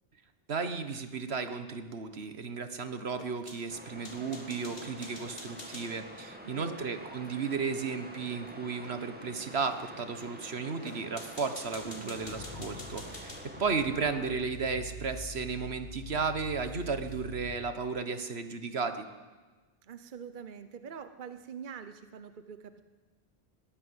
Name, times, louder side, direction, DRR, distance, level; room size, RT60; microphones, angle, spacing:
voice 1, 0.5-19.1, right 5 dB, 80° right, 9 dB, 1.6 m, -34 dB
sound 1, 3.1-5.9 8.8-8.9 9.7-9.8 10.1-10.4 10.8-13.8 14.5-14.7 15.9-16.0 16.4-16.5 16.8-17.3, left 2 dB, 60° left, 2.8 m, -48 dB
sound 2, 3.7-14.3, right 1 dB, 10° right, 1.9 m, -47 dB
voice 2, 6.4-6.9 11.8-12.3 19.8-22.8, right 7 dB, 50° right, 11 dB, 1.0 m, -45 dB
sound 3, 11.6-17.7, left 1 dB, 85° left, 2.5 m, -45 dB
21.5 x 15.5 x 8.1 m, 1.3 s
omnidirectional pair, 1.1 m